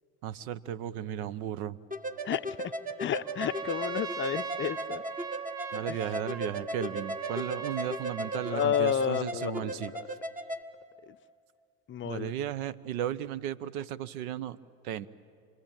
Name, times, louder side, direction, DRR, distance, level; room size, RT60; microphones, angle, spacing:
voice 1, 0.2-1.8 5.7-9.9 12.0-14.6 14.8-15.1, right 10 dB, 70° right, 1.0 m, -35 dB
sound 1, 1.9-10.6, right 1 dB, 20° right, 1.5 m, -37 dB
voice 2, 2.3-2.7 3.0-5.0 5.9-6.0 8.5-10.1 11.9-12.3, left 10 dB, 25° left, 0.6 m, -31 dB
Trumpet, 3.2-8.7, right 6 dB, 90° right, 1.5 m, -40 dB
28.0 x 21.0 x 9.0 m
hypercardioid pair, 85°, 44 cm